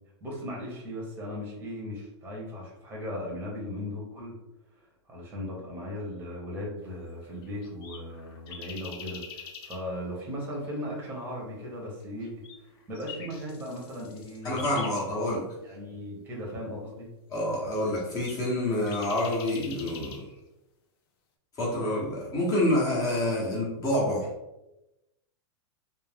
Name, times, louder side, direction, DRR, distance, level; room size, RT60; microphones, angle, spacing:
voice 1, 0.2-4.3 5.1-12.4 12.9-14.7 15.6-17.1, left 1 dB, 15° right, -3 dB, 0.8 m, -37 dB
sound 1, 7.2-9.8 12.2-15.0 17.8-20.2, left 6 dB, 55° left, 0.6 m, -44 dB
voice 2, 14.4-15.5 17.3-20.2 21.6-24.3, left 1 dB, 25° left, -5 dB, 0.7 m, -27 dB
2.5 x 2.0 x 3.4 m, 0.96 s
supercardioid pair, 145°, 15 cm